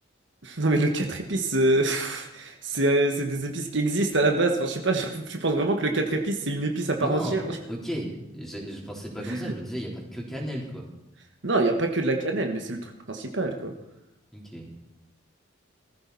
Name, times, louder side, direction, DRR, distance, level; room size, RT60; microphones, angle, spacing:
voice 1, 0.4-7.6 9.3-9.5 11.4-12.8 13.1-13.7, right 2 dB, 60° right, 3 dB, 1.5 m, -25 dB
voice 2, 7.0-10.9 14.3-14.7, equal, ahead, -3 dB, 3.7 m, -34 dB
21.0 x 14.5 x 4.2 m, 0.89 s
head